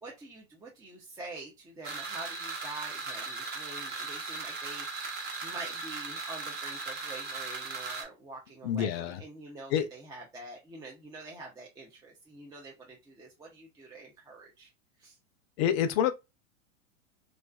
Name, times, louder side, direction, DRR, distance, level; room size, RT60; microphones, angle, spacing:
voice 1, 0.0-14.7 15.0-15.2, right 2 dB, 10° right, 0.4 m, -46 dB
sound 1, 1.8-8.0, right 4 dB, 25° right, 0.8 m, -38 dB
voice 2, 8.6-9.2 9.7-9.9 15.6-16.1, left 9 dB, 50° left, 0.5 m, -27 dB
2.4 x 2.3 x 2.2 m
hypercardioid pair, 110°, 40 cm